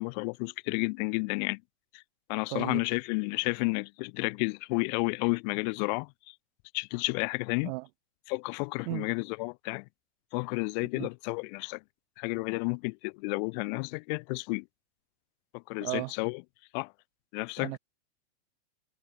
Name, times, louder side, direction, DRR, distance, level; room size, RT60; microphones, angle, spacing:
voice 1, 0.0-1.6 2.3-6.1 6.7-7.7 8.3-9.8 10.3-11.8 12.2-14.6 15.7-16.4 16.7-16.9 17.3-17.7, left 35 dB, 40° left, 1.6 m, -31 dB
voice 2, 2.5-2.8 7.6-7.9 8.8-9.1 10.9-11.1 15.8-16.1 17.6-17.8, right 26 dB, 45° right, 1.1 m, -35 dB
supercardioid pair, 155°, 34 cm